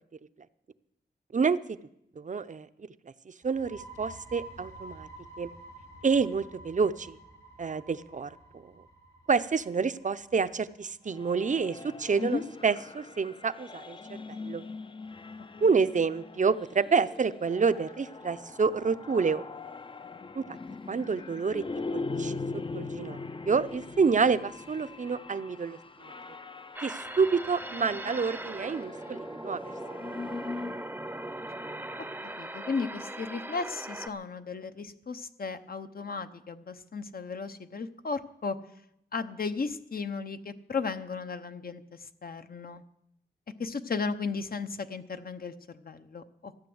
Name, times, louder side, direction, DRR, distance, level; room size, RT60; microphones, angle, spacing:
voice 1, 2.2-2.7 3.4-5.1 5.4-5.5 6.0-7.2 7.6-8.6 9.3-14.0 14.3-14.7 15.6-19.4 20.3-20.5 20.9-21.6 21.9-22.3 22.7-23.2 23.5-25.8 26.8-29.6, right 5 dB, 45° right, 13 dB, 0.6 m, -28 dB
sound 1, 3.4-10.9, right 1 dB, 85° left, 2.7 m, -49 dB
sound 2, 11.1-30.9, left 3 dB, 30° left, 0.5 m, -41 dB
sound 3, 26.8-34.1, right 1 dB, 10° right, 0.7 m, -39 dB
voice 2, 32.4-38.6 39.1-42.8 43.6-46.7, left 4 dB, 55° left, 9 dB, 0.9 m, -35 dB
14.5 x 10.0 x 7.9 m, 0.78 s
wide cardioid pair, 110°, 18 cm